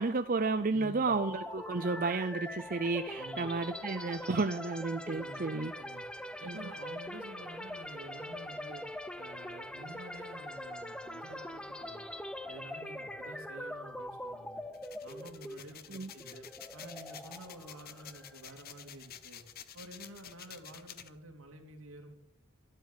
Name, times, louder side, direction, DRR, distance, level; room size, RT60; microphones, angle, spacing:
voice 1, 0.0-5.7 6.5-6.7 15.9-16.1, right 3 dB, 45° right, 8 dB, 0.7 m, -32 dB
voice 2, 0.7-1.1 3.1-3.5 5.1-6.1 6.4-8.8 9.2-12.1 12.5-14.6 15.0-16.4 16.7-19.4 19.7-22.1, right 1 dB, 85° right, 3 dB, 3.0 m, -50 dB
sound 1, 1.1-18.8, left 1 dB, 5° left, 0.8 m, -43 dB
sound 2, 14.7-21.1, left 9 dB, 45° left, 0.9 m, -50 dB
12.5 x 12.0 x 8.3 m, 0.76 s
head